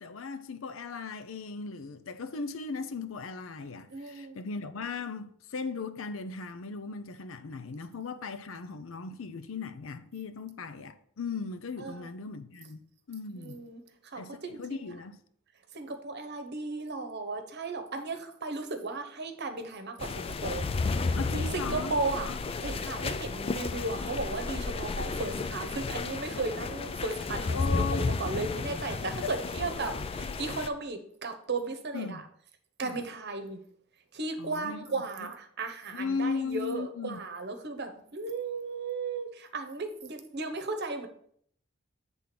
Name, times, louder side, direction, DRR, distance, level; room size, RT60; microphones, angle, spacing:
voice 1, 0.0-13.6 14.1-15.2 21.2-21.9 22.2-22.4 27.5-28.1 29.2-29.3 31.9-32.2 32.8-33.0 34.4-35.3 35.9-37.2, left 4 dB, 75° left, 0.6 m, -37 dB
voice 2, 3.9-4.4 11.8-12.1 13.3-14.8 15.7-20.7 21.1-22.3 22.6-32.2 32.8-33.6 34.1-41.1, right 3 dB, 55° right, 1.0 m, -35 dB
sound 1, 20.0-30.7, left 4 dB, 30° left, 0.3 m, -33 dB
8.4 x 3.6 x 5.9 m
head